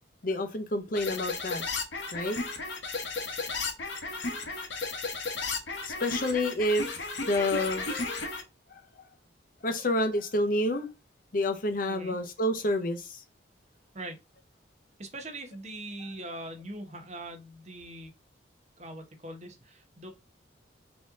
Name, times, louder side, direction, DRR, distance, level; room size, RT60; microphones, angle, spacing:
voice 1, 0.2-1.6 2.1-2.4 5.8-7.9 8.7-8.8 9.6-10.9 11.3-13.2, left 1 dB, 45° left, 0.7 m, -29 dB
sound 1, 1.0-8.4, left 3 dB, 70° left, 1.0 m, -34 dB
voice 2, 15.0-18.1 18.8-20.1, right 1 dB, 35° right, 0.9 m, -41 dB
4.2 x 2.9 x 3.5 m
head